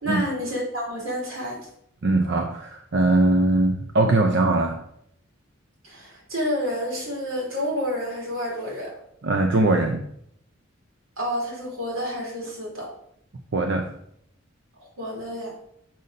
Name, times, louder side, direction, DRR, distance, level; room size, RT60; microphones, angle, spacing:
voice 1, 0.0-1.7 5.8-9.0 11.2-12.9 14.8-15.6, equal, 80° right, -2 dB, 2.7 m, -29 dB
voice 2, 2.0-4.8 9.2-10.1 13.5-13.9, right 2 dB, 55° right, 4 dB, 0.5 m, -21 dB
6.4 x 4.0 x 5.3 m, 0.71 s
head